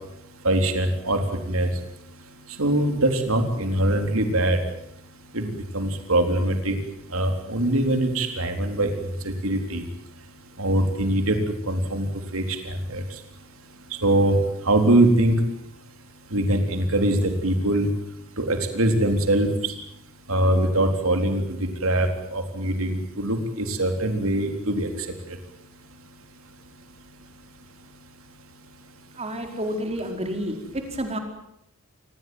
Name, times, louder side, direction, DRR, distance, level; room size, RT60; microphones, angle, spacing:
voice 1, 0.4-1.7 2.6-4.6 5.3-6.7 7.1-8.9 9.2-9.8 10.6-11.4 11.7-12.1 12.3-13.0 14.0-14.4 14.7-15.4 16.3-17.9 18.4-19.7 20.3-24.9, right 1 dB, 65° right, 6 dB, 3.9 m, -22 dB
voice 2, 29.2-31.2, equal, 30° right, 5 dB, 4.7 m, -30 dB
26.5 x 19.5 x 9.3 m, 0.77 s
head